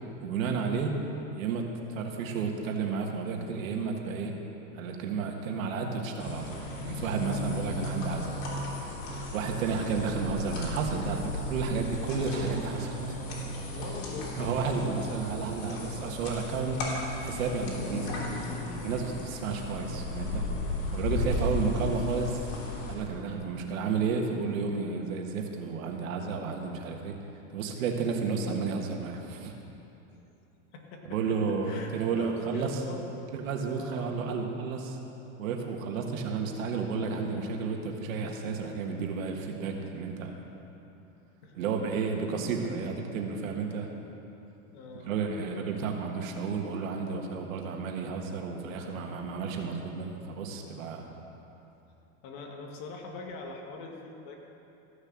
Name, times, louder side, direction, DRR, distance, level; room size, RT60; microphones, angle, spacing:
voice 1, 0.2-1.0 1.4-4.3 4.7-8.3 9.3-13.2 13.7-13.8 14.4-16.8 17.2-18.1 18.8-20.5 20.9-22.6 22.9-27.2 27.5-29.6 31.1-32.8 33.3-35.0 35.4-40.4 41.5-43.9 44.9-51.1, right 5 dB, 90° right, 3 dB, 1.6 m, -32 dB
sound 1, 6.2-22.9, left 2 dB, 70° left, 3.3 m, -35 dB
voice 2, 13.7-14.3 30.1-30.2 30.7-31.4 31.6-33.1 33.7-34.2 41.4-41.6 44.7-45.2 45.6-45.7 52.2-54.4, left 3 dB, 55° left, 1 dB, 2.0 m, -43 dB
14.5 x 6.6 x 7.6 m, 3.0 s
supercardioid pair, 140°, 39 cm